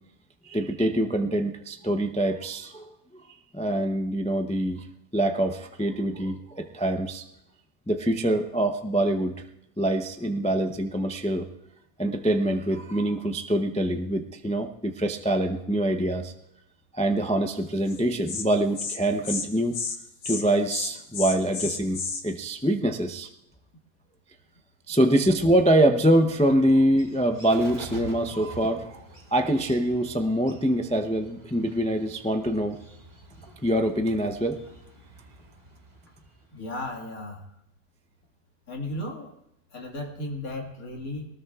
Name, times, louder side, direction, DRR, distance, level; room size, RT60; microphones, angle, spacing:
voice 1, 0.4-2.8 3.1-3.2 3.5-4.8 5.1-7.2 7.9-9.3 9.8-11.5 12.0-16.3 16.9-19.8 20.2-23.3 24.9-29.0 29.3-32.8 33.6-34.6, right 1 dB, 10° left, 5 dB, 0.3 m, -24 dB
Insect, 17.9-18.0 18.3-18.4 18.8-19.0 19.2-19.5 19.7-20.0 20.2-20.4 20.7-22.2, left 5 dB, 90° left, 1.8 m, -31 dB
Bird, 25.5-36.9, right 1 dB, 30° right, 1.9 m, -47 dB
voice 2, 36.5-37.4 38.7-39.3 39.7-41.3, left 1 dB, 70° left, 1 dB, 2.4 m, -35 dB
22.0 x 19.0 x 2.4 m, 0.82 s
omnidirectional pair, 1.5 m